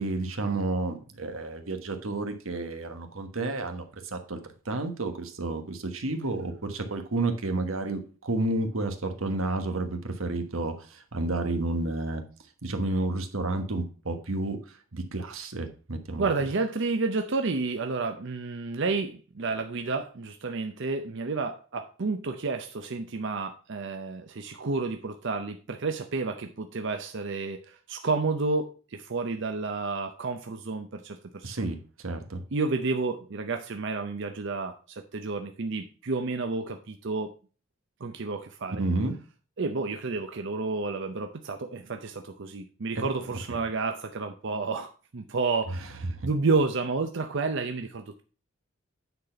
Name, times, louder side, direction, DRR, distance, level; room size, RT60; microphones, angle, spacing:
voice 1, 0.0-4.4 4.6-12.2 12.6-16.3 31.4-32.4 38.8-39.1 43.5-43.6 46.1-46.3, right 2 dB, 90° right, 7 dB, 1.3 m, -31 dB
voice 2, 16.2-31.7 32.5-37.3 38.0-38.8 39.6-48.2, right 3 dB, 60° right, 6 dB, 0.7 m, -30 dB
9.4 x 4.1 x 5.7 m, 0.37 s
head